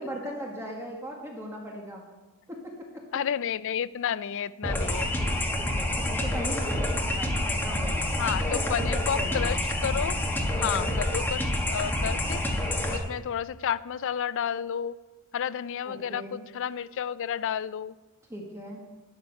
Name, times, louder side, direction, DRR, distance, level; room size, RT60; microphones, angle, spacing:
voice 1, 0.0-2.1 2.5-3.0 5.2-8.0 8.5-9.5 10.6-11.0 15.8-16.4 18.3-18.8, equal, 10° right, -1 dB, 1.4 m, -39 dB
voice 2, 3.1-5.1 8.2-9.6 9.8-10.2 10.5-12.4 12.9-15.0 15.3-17.9, left 8 dB, 60° left, 16 dB, 0.4 m, -31 dB
sound 1, 4.6-13.0, left 1 dB, 10° left, 1.4 m, -28 dB
12.0 x 9.5 x 5.7 m, 1.2 s
head